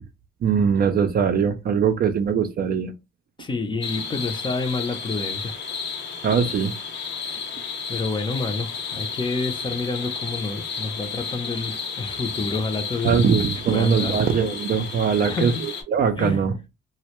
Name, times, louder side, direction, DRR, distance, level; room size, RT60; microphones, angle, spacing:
voice 1, 0.4-2.9 6.2-6.7 13.0-16.6, right 6 dB, 50° right, 0.4 m, -21 dB
voice 2, 3.4-5.8 7.3-7.4 7.9-13.2 13.6-14.2 15.2-15.6 16.2-16.4, left 3 dB, 25° left, 0.5 m, -29 dB
sound 1, 3.8-15.8, left 5 dB, 60° left, 0.8 m, -32 dB
2.1 x 2.1 x 2.9 m
cardioid pair, 90°, 20 cm